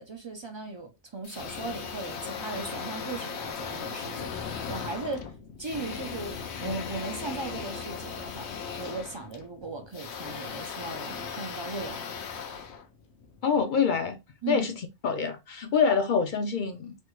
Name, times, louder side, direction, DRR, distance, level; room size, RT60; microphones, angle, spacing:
voice 1, 0.0-5.3 5.6-12.1 14.4-14.7, right 3 dB, 35° right, 0.4 m, -37 dB
sound 1, 1.2-13.4, left 6 dB, 80° left, 0.9 m, -37 dB
voice 2, 13.4-14.2 14.5-14.8 15.0-16.9, left 6 dB, 55° left, 0.6 m, -25 dB
3.2 x 2.3 x 3.0 m
omnidirectional pair, 1.1 m